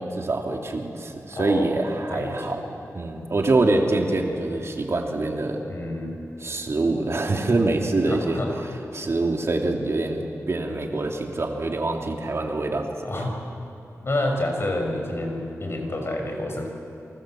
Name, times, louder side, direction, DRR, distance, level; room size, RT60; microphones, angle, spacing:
voice 1, 0.0-2.6 2.9-5.6 6.4-8.4 8.9-13.3, right 2 dB, 50° right, 2 dB, 2.9 m, -25 dB
voice 2, 1.3-1.7 2.1-2.6 5.7-6.2 8.1-8.6 13.0-13.4 14.0-16.7, left 1 dB, 45° left, 2 dB, 5.7 m, -28 dB
30.0 x 25.0 x 7.7 m, 2.8 s
wide cardioid pair, 95°, 6 cm